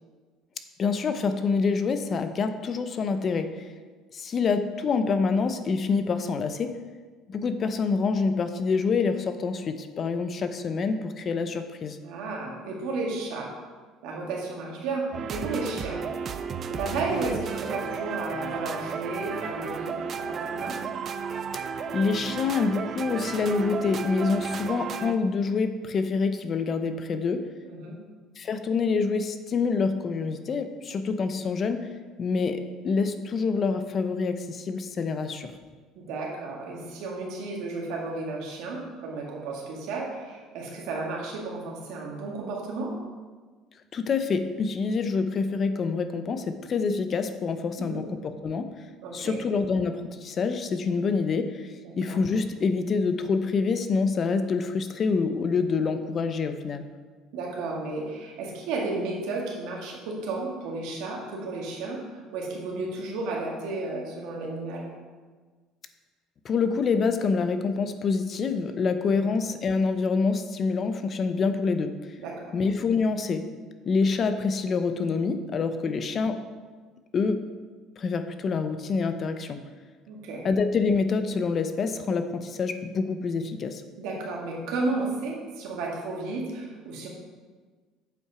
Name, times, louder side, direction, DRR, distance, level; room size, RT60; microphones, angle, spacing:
voice 1, 0.8-3.7 4.1-6.7 7.3-12.0 21.9-27.5 28.4-31.9 32.2-35.6 43.9-48.7 49.1-56.8 66.4-72.2 72.5-73.4 73.9-76.4 77.1-77.5 78.0-79.6 80.4-83.8, left 4 dB, 35° left, 9 dB, 0.6 m, -26 dB
voice 2, 12.0-13.5 14.0-16.0 16.7-20.8 24.5-24.6 27.6-28.0 36.0-42.9 47.8-48.1 49.0-49.4 51.8-52.2 57.3-64.9 69.1-69.2 72.2-72.5 75.9-76.0 80.1-80.5 84.0-87.1, right 3 dB, 75° right, -1 dB, 1.9 m, -33 dB
sound 1, 15.1-25.1, right 6 dB, 40° right, 0.5 m, -33 dB
7.8 x 5.5 x 4.9 m, 1.4 s
cardioid pair, 125°, 0 cm